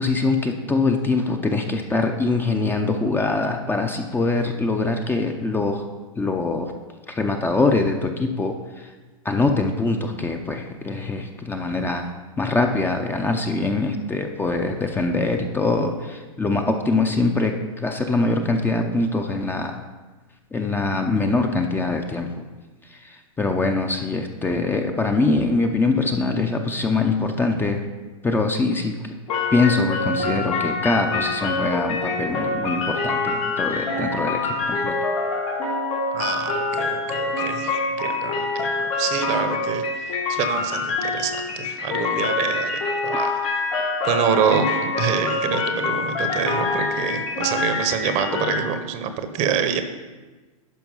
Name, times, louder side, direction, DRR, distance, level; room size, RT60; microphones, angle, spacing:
voice 1, 0.0-5.9 6.2-6.7 7.1-8.5 9.2-12.1 12.4-19.8 20.5-22.3 23.4-27.8 28.2-29.1 29.5-34.9, left 3 dB, 10° left, 4 dB, 0.6 m, -23 dB
sound 1, 29.3-48.6, left 3 dB, 75° left, 3.3 m, -25 dB
voice 2, 36.1-39.8 40.3-43.4 43.8-44.7 45.0-49.8, right 7 dB, 40° right, 9 dB, 0.9 m, -26 dB
11.0 x 4.5 x 5.5 m, 1.3 s
hypercardioid pair, 110°, 18 cm